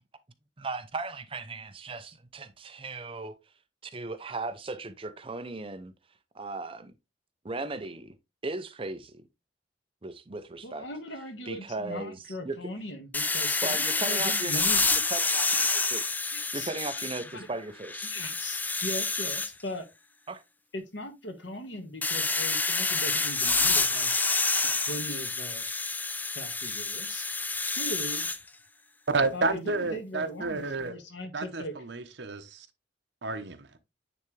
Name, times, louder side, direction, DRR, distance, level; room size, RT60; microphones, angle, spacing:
voice 1, 0.6-3.4 3.9-5.9 6.3-6.9 7.4-8.1 8.4-9.2 10.0-10.9 11.5-12.2 12.4-12.6 13.6-14.6 14.9-16.0 16.4-18.1 20.3-20.4, right 3 dB, 30° right, 0.6 m, -37 dB
voice 2, 10.6-14.9 16.3-17.0 17.3-17.5 18.0-19.9 20.7-24.1 24.6-25.7 26.3-27.3 27.8-28.3 29.3-31.7, left 1 dB, 80° left, 1.6 m, -39 dB
sound 1, 13.1-17.4 17.8-19.5 22.0-28.4, left 3 dB, 10° left, 0.3 m, -28 dB
voice 3, 29.1-31.0 31.3-32.7 33.2-33.7, right 3 dB, 75° right, 0.9 m, -30 dB
9.4 x 3.5 x 3.2 m
head